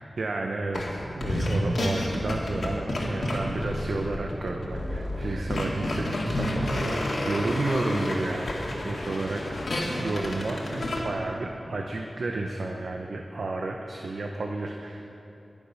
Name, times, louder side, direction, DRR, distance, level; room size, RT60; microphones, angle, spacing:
voice 1, 0.2-8.5 8.8-9.4 9.7-15.0, right 2 dB, 75° right, 2 dB, 0.8 m, -32 dB
sound 1, 0.7-0.9 1.2-11.0, left 1 dB, 75° left, 2.2 m, -30 dB
21.5 x 7.2 x 5.7 m, 2.9 s
wide cardioid pair, 80°, 0 cm